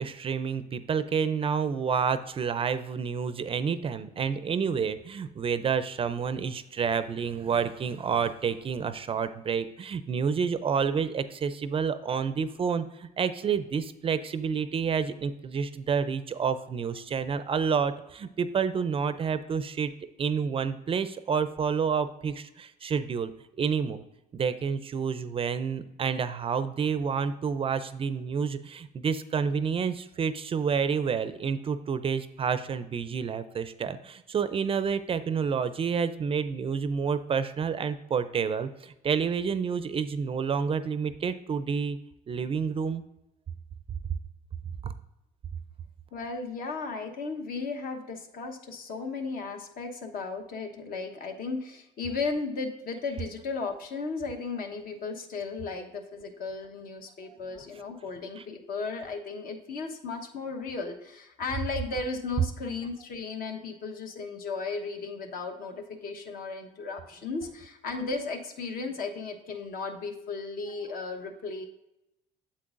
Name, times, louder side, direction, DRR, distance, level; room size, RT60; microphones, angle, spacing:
voice 1, 0.0-19.9 20.2-23.3 23.6-24.1 24.3-42.0 42.3-43.0 44.8-44.9 58.4-58.5, right 6 dB, 35° right, 12 dB, 0.4 m, -29 dB
voice 2, 46.1-71.7, left 4 dB, 60° left, 4 dB, 1.1 m, -35 dB
8.5 x 7.5 x 2.5 m, 0.91 s
cardioid pair, 110°, 17 cm